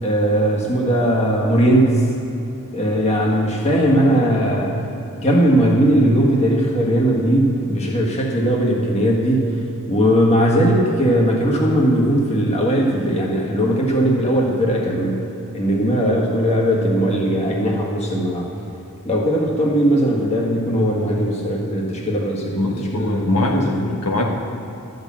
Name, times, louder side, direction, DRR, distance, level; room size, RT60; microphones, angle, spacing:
voice 1, 0.0-2.1 2.7-4.8 5.2-9.6 9.9-15.2 15.5-18.5 19.0-23.8, right 1 dB, 30° left, -2 dB, 1.6 m, -18 dB
voice 2, 22.6-24.2, left 2 dB, 80° left, 1 dB, 1.5 m, -22 dB
12.5 x 6.6 x 7.3 m, 2.9 s
head